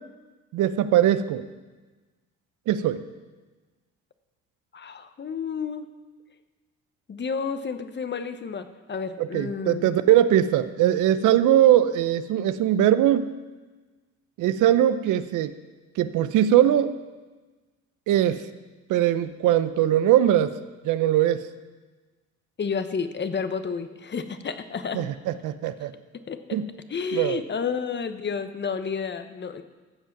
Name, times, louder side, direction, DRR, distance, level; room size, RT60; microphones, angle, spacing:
voice 1, 0.5-1.4 2.7-3.0 9.2-13.3 14.4-15.5 16.0-16.9 18.1-18.4 18.9-20.6 20.8-21.4 24.9-25.9 26.5-26.7 27.1-27.4, right 11 dB, 85° right, 12 dB, 0.7 m, -21 dB
voice 2, 4.7-5.9 7.1-9.9 22.6-25.0 26.3-26.4 26.9-29.6, left 6 dB, 35° left, 10 dB, 0.9 m, -31 dB
14.5 x 7.5 x 6.0 m, 1.3 s
cardioid pair, 90°, 30 cm